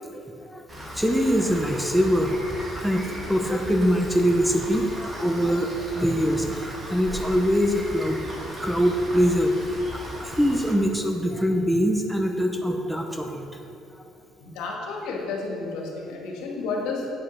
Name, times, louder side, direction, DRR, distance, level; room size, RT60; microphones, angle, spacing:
voice 1, 0.1-2.3 2.8-8.2 8.6-13.6, equal, ahead, 3 dB, 0.7 m, -24 dB
Rain, 0.7-10.7, equal, 20° right, 1.7 m, -37 dB
voice 2, 14.4-17.1, left 3 dB, 85° left, -1 dB, 1.9 m, -31 dB
8.8 x 5.5 x 6.4 m, 2.8 s
cardioid pair, 125°, 0 cm